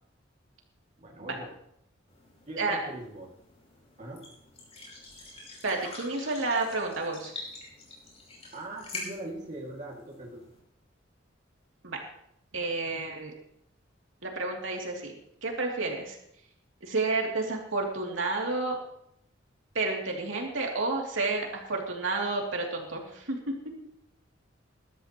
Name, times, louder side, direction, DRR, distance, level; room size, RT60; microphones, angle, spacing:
voice 1, 1.0-1.5 2.5-3.3 4.0-4.3 8.5-10.4, right 1 dB, 40° right, -2 dB, 2.4 m, -41 dB
sound 1, 2.1-10.6, left 2 dB, 35° left, 5.2 m, -46 dB
voice 2, 5.6-7.3 11.8-12.0 12.5-13.3 14.2-15.1 15.4-16.2 16.8-18.8 19.7-23.4, right 3 dB, 75° right, 0 dB, 2.8 m, -30 dB
21.0 x 12.5 x 3.0 m, 0.75 s
head